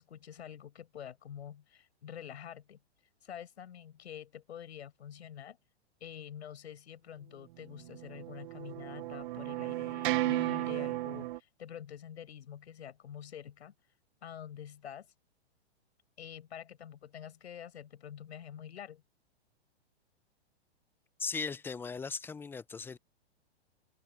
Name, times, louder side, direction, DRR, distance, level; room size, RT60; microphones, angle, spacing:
voice 1, 0.0-2.8 3.2-5.6 6.0-13.7 14.2-15.1 16.2-19.0, left 9 dB, 75° left, 6.4 m, -47 dB
sound 1, 7.8-11.4, right 16 dB, 50° right, 0.4 m, -34 dB
voice 2, 21.2-23.0, left 5 dB, 5° left, 0.5 m, -38 dB
hypercardioid pair, 130°, 33 cm